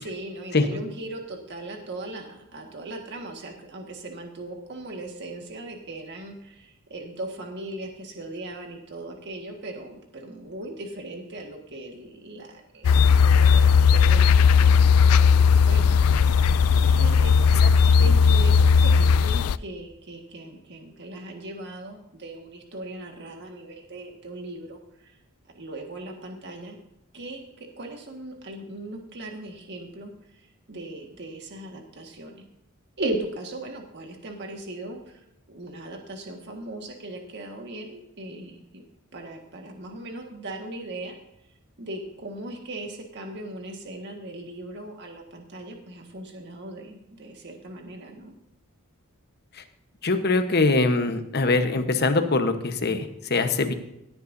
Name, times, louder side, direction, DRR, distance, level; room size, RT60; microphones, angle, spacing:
voice 1, 0.0-25.2 25.5-26.8 27.1-32.4 33.0-38.8 39.1-41.1 41.8-48.3, right 1 dB, 55° right, 3 dB, 1.7 m, -38 dB
sound 1, 12.8-19.6, left 6 dB, 85° left, 0.3 m, -17 dB
voice 2, 50.0-53.7, left 3 dB, 50° left, 8 dB, 1.1 m, -23 dB
17.5 x 9.7 x 2.7 m, 0.85 s
head